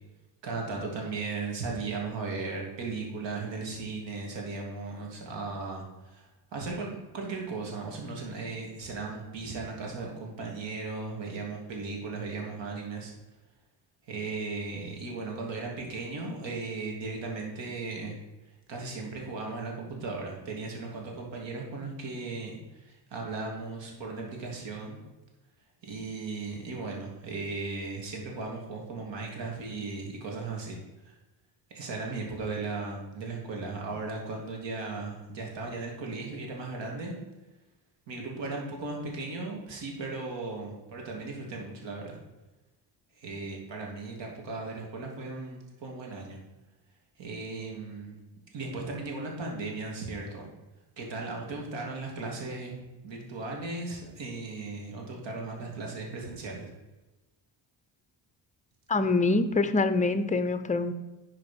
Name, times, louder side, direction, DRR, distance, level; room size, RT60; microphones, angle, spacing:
voice 1, 0.4-13.1 14.1-18.2 18.7-25.0 25.8-30.8 31.0-31.1 31.7-37.2 38.1-42.2 43.2-46.4 47.2-48.2 48.5-50.5 51.0-56.7, right 3 dB, 75° right, 0 dB, 2.9 m, -37 dB
voice 2, 58.9-60.9, left 3 dB, 15° left, 11 dB, 0.7 m, -25 dB
11.5 x 4.8 x 5.3 m, 1.1 s
cardioid pair, 100°, 44 cm